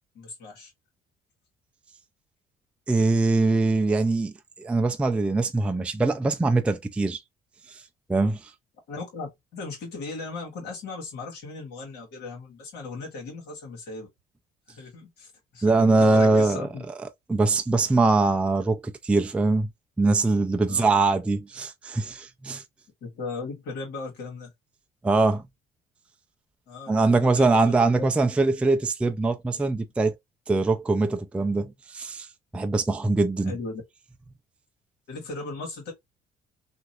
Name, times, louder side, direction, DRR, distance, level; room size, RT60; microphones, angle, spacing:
voice 1, 0.2-0.7 8.9-14.1 14.7-16.8 20.7-20.9 23.0-24.5 26.7-28.0 33.4-33.8 35.1-35.9, left 3 dB, 80° left, 1.7 m, -37 dB
voice 2, 2.9-4.3 4.6-7.2 7.7-7.8 8.1-8.5 15.6-16.7 17.3-19.7 20.0-22.6 25.0-25.4 26.9-30.2 30.5-32.3 32.5-33.5, right 3 dB, 5° right, 0.3 m, -22 dB
3.0 x 2.5 x 2.8 m
cardioid pair, 110°, 17 cm